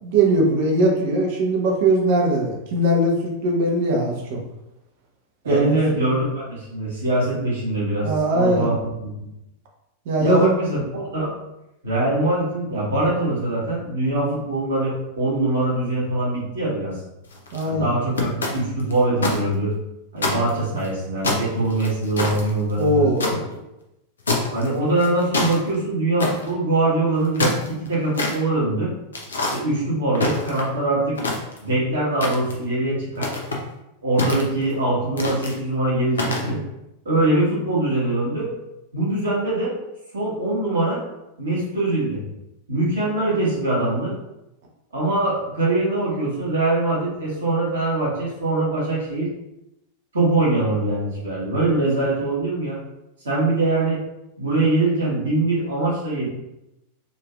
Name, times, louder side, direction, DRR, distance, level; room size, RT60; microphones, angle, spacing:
voice 1, 0.0-4.4 5.5-6.1 8.0-8.7 10.1-10.6 17.5-17.9 22.8-23.6, right 1 dB, 50° right, 0 dB, 0.7 m, -20 dB
voice 2, 5.4-9.1 10.2-11.3 11.8-16.9 17.6-19.7 20.1-23.4 24.5-28.9 29.5-31.2 31.6-33.3 34.0-36.6 37.0-38.5 38.9-39.7 40.1-41.0 41.4-42.2 42.7-44.1 44.9-49.3 50.1-52.8 53.2-54.0 54.4-56.3, right 2 dB, 65° right, -6 dB, 1.5 m, -23 dB
sound 1, 17.2-17.6 18.2-19.4 19.7-19.8 20.2-20.9 21.2-23.3 24.3-24.7 25.0-25.6 26.2-26.5 27.1-28.3 29.1-29.6 30.1-30.8 31.1-31.7 32.2-32.6 33.2-33.6 34.2-34.7 35.2-35.5 36.1-36.5, left 2 dB, 70° left, 0.6 m, -25 dB
3.9 x 2.7 x 2.3 m, 0.90 s
figure-of-eight pair, 90°, 0 cm